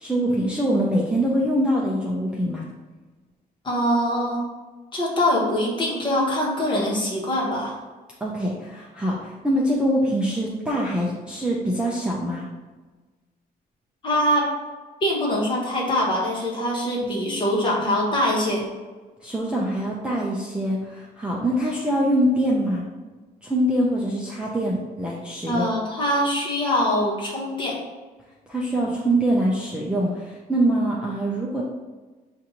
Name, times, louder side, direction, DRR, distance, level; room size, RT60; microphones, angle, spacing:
voice 1, 0.0-2.7 8.2-12.5 19.2-22.8 23.4-25.7 28.5-31.6, right 1 dB, 5° right, -4 dB, 0.4 m, -24 dB
voice 2, 3.6-4.4 4.9-7.8 14.0-14.5 15.0-18.7 25.5-27.8, equal, 30° left, -4 dB, 1.2 m, -23 dB
7.1 x 2.5 x 2.8 m, 1.3 s
cardioid pair, 175°, 17 cm